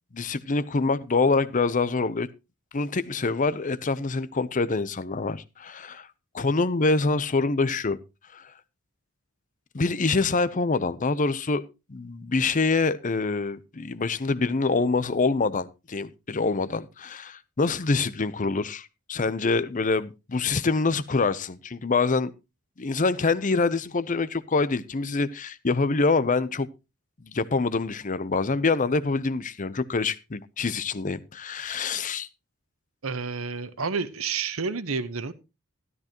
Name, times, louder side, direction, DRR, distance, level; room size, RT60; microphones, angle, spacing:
voice 1, 0.1-2.3 2.7-6.1 6.3-8.0 8.3-8.4 9.7-11.6 11.9-22.3 22.8-26.7 27.2-32.3, left 3 dB, 35° left, 0.7 m, -25 dB
voice 2, 33.0-35.3, right 5 dB, 75° right, 1.0 m, -30 dB
13.5 x 12.5 x 2.9 m
head